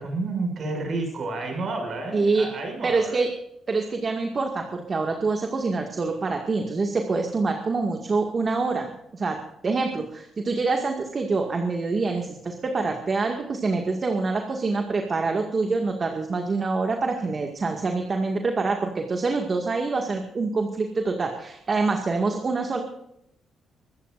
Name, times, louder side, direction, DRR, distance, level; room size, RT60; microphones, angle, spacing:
voice 1, 0.0-3.2, right 3 dB, 55° right, 4 dB, 6.3 m, -30 dB
voice 2, 2.1-2.5 2.8-3.3 3.7-22.8, right 3 dB, 35° right, 3 dB, 2.0 m, -26 dB
23.5 x 13.5 x 2.6 m, 0.78 s
cardioid pair, 90°, 0 cm